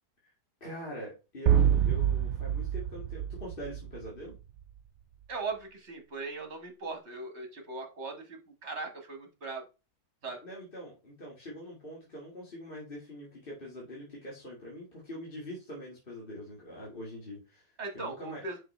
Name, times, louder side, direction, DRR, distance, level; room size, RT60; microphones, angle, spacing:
voice 1, 0.6-4.4 10.3-18.4, equal, 35° left, -4 dB, 2.1 m, -43 dB
sound 1, 1.5-4.3, right 9 dB, 65° right, 0.7 m, -27 dB
voice 2, 5.3-9.6 10.2-10.4 17.8-18.6, right 3 dB, 45° right, 4 dB, 1.9 m, -39 dB
5.7 x 5.5 x 3.3 m, 0.28 s
omnidirectional pair, 1.7 m